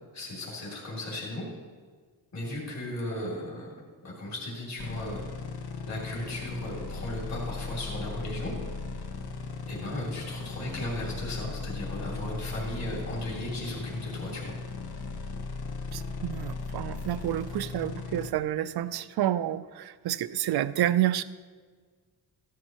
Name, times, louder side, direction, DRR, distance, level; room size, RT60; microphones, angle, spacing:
voice 1, 0.1-1.4 2.3-3.7 4.0-5.2 5.8-8.5 9.7-14.5, left 1 dB, 40° left, -4 dB, 2.8 m, -36 dB
sound 1, 4.8-18.3, left 4 dB, 60° left, 1.1 m, -37 dB
voice 2, 15.9-21.2, right 12 dB, 65° right, 14 dB, 0.5 m, -29 dB
14.5 x 12.0 x 3.0 m, 1.5 s
wide cardioid pair, 170°, 42 cm